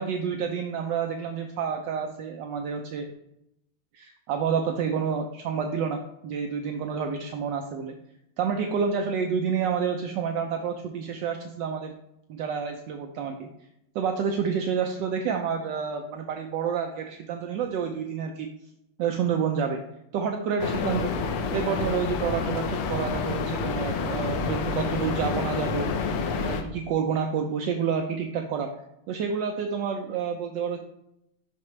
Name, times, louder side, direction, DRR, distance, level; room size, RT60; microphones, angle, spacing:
voice 1, 0.0-3.1 3.9-7.9 8.4-11.9 12.3-13.5 13.9-18.5 19.0-19.8 20.1-21.2 21.5-25.9 26.4-28.7 29.1-30.8, right 6 dB, 75° right, 4 dB, 1.0 m, -29 dB
sound 1, 20.6-26.6, left 4 dB, 85° left, 1.7 m, -28 dB
6.0 x 5.7 x 3.1 m, 0.82 s
omnidirectional pair, 2.4 m